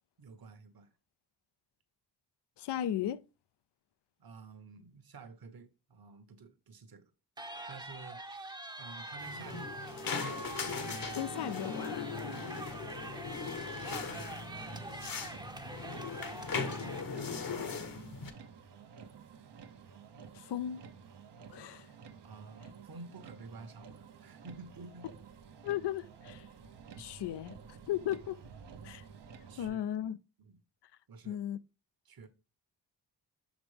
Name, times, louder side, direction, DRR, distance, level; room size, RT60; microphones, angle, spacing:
voice 1, 0.2-0.9 4.2-7.1 7.7-9.9 12.3-12.6 22.2-25.0 29.5-29.8 30.4-30.6 31.1-31.4 32.0-32.3, right 4 dB, 60° right, 1.1 m, -51 dB
voice 2, 2.6-3.2 11.1-12.1 20.3-20.8 21.5-21.9 25.6-26.5 27.0-27.6 27.9-28.4 28.8-29.0 29.6-30.2 31.2-31.6, left 11 dB, 80° left, 0.5 m, -36 dB
sound 1, 7.4-17.0, right 2 dB, 10° right, 0.6 m, -44 dB
sound 2, 9.2-18.3, left 5 dB, 55° left, 1.1 m, -39 dB
Motor vehicle (road), 13.6-29.7, right 6 dB, 80° right, 0.9 m, -52 dB
6.1 x 5.1 x 3.3 m
cardioid pair, 85°, 40 cm